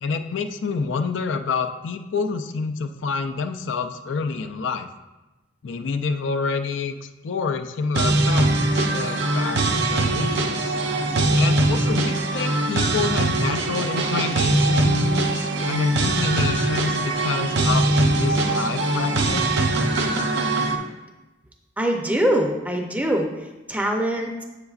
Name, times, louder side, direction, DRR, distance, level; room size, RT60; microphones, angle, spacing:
voice 1, 0.0-4.9 5.6-10.8 11.3-19.5, left 4 dB, 85° left, 7 dB, 0.4 m, -27 dB
sound 1, 7.9-20.8, right 2 dB, 65° right, 0.6 m, -22 dB
voice 2, 21.8-23.3 23.7-24.4, right 1 dB, 10° right, 2 dB, 0.5 m, -23 dB
7.6 x 6.7 x 2.4 m, 1.1 s
head